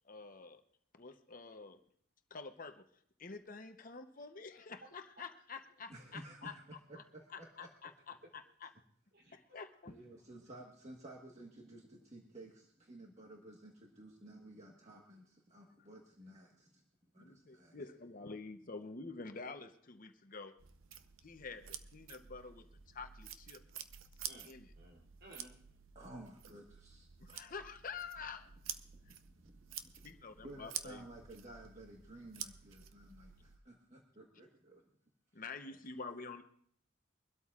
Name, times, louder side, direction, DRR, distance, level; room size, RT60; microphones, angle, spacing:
voice 1, 0.0-0.6 0.9-1.8 2.3-2.9 3.2-6.6 7.0-7.1 7.3-8.7 9.3-9.9 15.8-15.9 17.2-20.5 21.2-23.6 24.4-24.7 27.2-28.5 30.0-31.1 35.3-36.4, left 4 dB, 45° left, 7 dB, 0.8 m, -48 dB
voice 2, 5.9-6.6 7.1-7.7 9.2-9.3 9.9-16.8 17.1-17.8 25.9-27.1 28.8-29.9 30.4-34.8 35.3-35.7, right 1 dB, 35° right, -1 dB, 1.4 m, -54 dB
sound 1, 20.6-33.6, right 9 dB, 85° right, 0.7 m, -50 dB
voice 3, 24.3-25.8, right 1 dB, 55° right, 1 dB, 3.1 m, -58 dB
24.0 x 12.5 x 2.4 m, 0.63 s
head